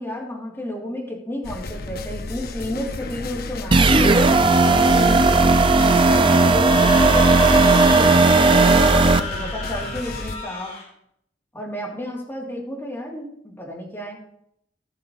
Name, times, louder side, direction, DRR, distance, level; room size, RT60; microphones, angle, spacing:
voice 1, 0.0-4.2 4.7-5.5 6.1-10.7 11.5-14.2, equal, 10° left, -3 dB, 3.0 m, -32 dB
sound 1, 1.4-10.4, left 3 dB, 55° left, 0.7 m, -33 dB
sound 2, 3.7-9.2, right 3 dB, 30° right, 0.6 m, -15 dB
Screaming, 6.5-10.9, left 4 dB, 35° left, 3.5 m, -31 dB
15.5 x 6.6 x 4.1 m, 0.71 s
head